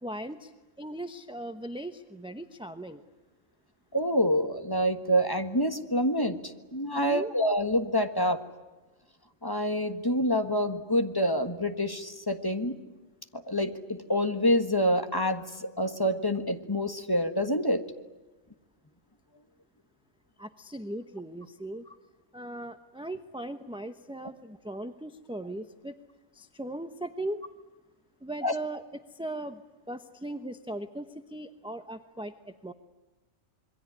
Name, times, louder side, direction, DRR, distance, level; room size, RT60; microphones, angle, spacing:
voice 1, 0.0-0.5 0.8-3.0 6.9-7.3 20.4-21.9 22.3-25.9 26.3-27.4 28.2-28.8 29.1-29.6 29.9-32.7, right 1 dB, 5° right, 8 dB, 0.8 m, -38 dB
voice 2, 3.9-6.4 6.7-8.4 9.4-12.7 13.3-17.8 28.4-28.5, equal, 15° left, 7 dB, 1.6 m, -27 dB
27.0 x 22.5 x 9.8 m, 1.2 s
omnidirectional pair, 1.3 m